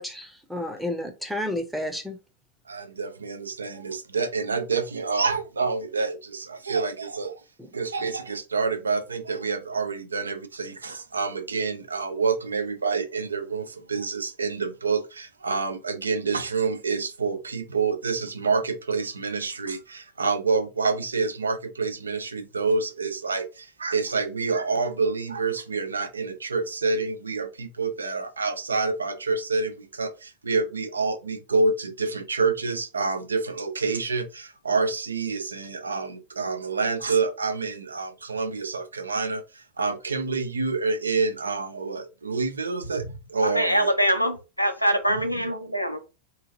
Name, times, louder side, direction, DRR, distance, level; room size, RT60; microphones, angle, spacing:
voice 1, 0.0-2.2 7.6-7.7, left 1 dB, ahead, 0.7 m, -31 dB
voice 2, 2.7-7.4 7.7-43.9, right 4 dB, 75° right, 0.5 m, -27 dB
voice 3, 43.4-46.0, equal, 90° left, 0.5 m, -24 dB
2.9 x 2.5 x 2.6 m
figure-of-eight pair, 90°, 0 cm